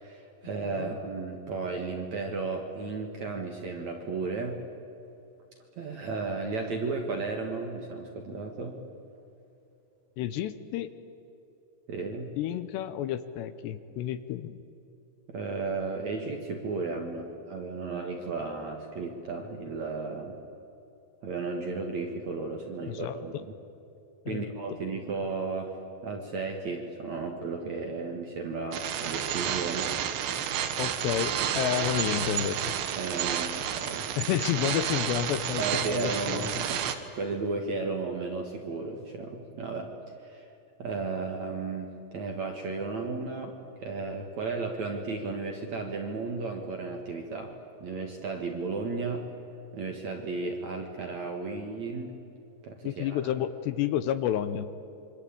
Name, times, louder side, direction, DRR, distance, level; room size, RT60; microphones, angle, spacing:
voice 1, 0.0-4.6 5.8-8.8 11.9-12.3 15.3-20.4 21.2-23.4 24.3-29.9 33.0-34.1 35.6-36.8 37.1-39.9 40.2-40.5 40.8-47.5 47.8-49.3 49.7-52.1 52.6-53.3, right 4 dB, 55° right, 3 dB, 2.1 m, -34 dB
voice 2, 10.2-10.9 12.4-14.6 22.9-23.4 24.3-24.5 30.7-32.7 34.2-36.6 52.8-54.7, left 11 dB, 75° left, 12 dB, 2.8 m, -30 dB
sound 1, 28.7-37.0, right 9 dB, 70° right, 3.3 m, -31 dB
27.0 x 24.5 x 8.6 m, 2.9 s
omnidirectional pair, 5.3 m